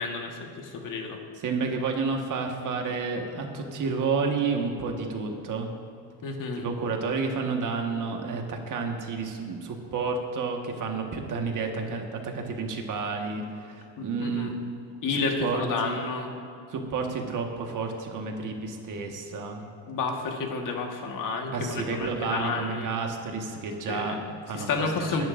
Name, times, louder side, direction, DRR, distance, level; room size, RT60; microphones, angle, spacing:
voice 1, 0.0-1.2 6.2-6.6 14.0-14.5 15.0-16.3 19.9-22.9 23.9-24.1 24.5-25.3, left 4 dB, 55° left, 2 dB, 1.6 m, -30 dB
voice 2, 1.4-5.7 6.6-14.6 15.1-16.2 16.7-19.6 21.5-24.7 25.2-25.3, right 4 dB, 50° right, 3 dB, 1.6 m, -30 dB
21.0 x 11.0 x 2.6 m, 2.6 s
cardioid pair, 135°, 39 cm